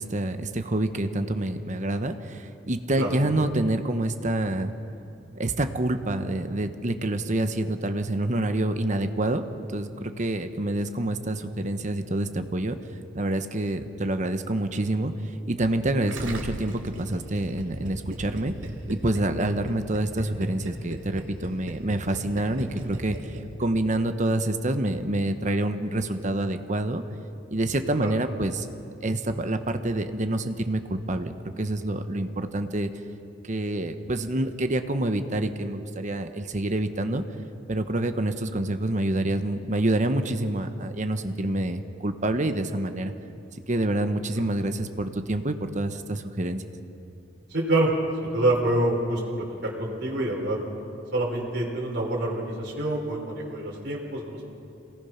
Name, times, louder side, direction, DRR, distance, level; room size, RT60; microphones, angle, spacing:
voice 1, 0.0-4.7 5.4-9.4 9.7-12.8 13.1-15.1 15.5-18.5 18.9-27.0 27.5-28.7 29.0-30.8 31.1-32.9 33.4-37.2 37.7-43.1 43.7-46.6, right 1 dB, 40° right, 8 dB, 1.1 m, -27 dB
Gurgling, 16.1-23.9, right 1 dB, 85° right, 2.6 m, -37 dB
voice 2, 47.5-47.9 48.2-50.6 51.1-54.5, right 1 dB, 55° right, -3 dB, 3.8 m, -26 dB
27.0 x 18.5 x 5.8 m, 2.7 s
head